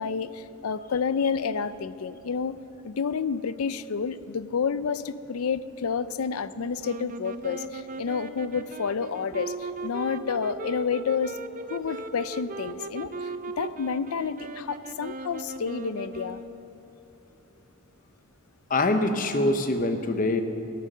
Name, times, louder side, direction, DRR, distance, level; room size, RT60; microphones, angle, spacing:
voice 1, 0.0-2.6 2.8-11.4 11.7-13.3 13.6-16.4, left 6 dB, 80° left, 15 dB, 0.5 m, -29 dB
sound 1, 6.8-16.8, right 2 dB, 40° right, 0.6 m, -38 dB
voice 2, 18.7-20.4, left 2 dB, 40° left, 8 dB, 0.8 m, -24 dB
17.5 x 11.0 x 6.6 m, 3.0 s
head